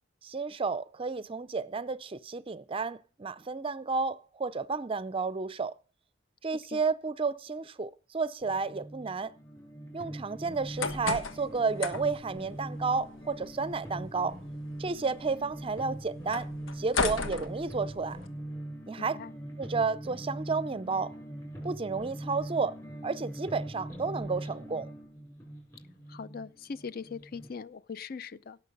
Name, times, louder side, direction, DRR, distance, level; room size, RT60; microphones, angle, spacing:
voice 1, 0.2-5.7 6.4-9.3 9.9-14.4 14.8-16.5 16.8-18.2 18.9-19.2 19.6-21.1 21.6-22.8 23.0-24.9, right 4 dB, 30° right, 0.5 m, -32 dB
sound 1, 8.4-27.5, right 1 dB, 15° left, 5.6 m, -42 dB
sound 2, 10.5-18.3, left 4 dB, 85° left, 1.4 m, -37 dB
voice 2, 19.0-19.3 26.1-28.6, left 5 dB, 50° left, 0.5 m, -41 dB
17.5 x 6.4 x 5.3 m
head